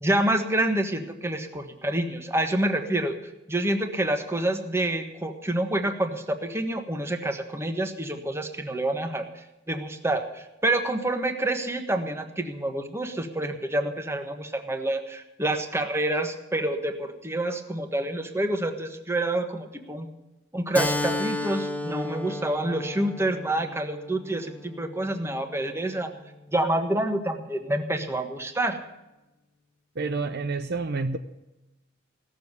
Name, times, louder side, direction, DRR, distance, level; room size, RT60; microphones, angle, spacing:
voice 1, 0.0-3.1 3.5-20.1 20.5-26.1 26.5-28.8, right 1 dB, 15° right, 6 dB, 1.3 m, -27 dB
Keyboard (musical), 20.7-25.9, left 1 dB, 10° left, 0.9 m, -33 dB
voice 2, 30.0-31.2, right 3 dB, 55° right, 9 dB, 0.7 m, -28 dB
17.0 x 7.2 x 9.6 m, 0.97 s
head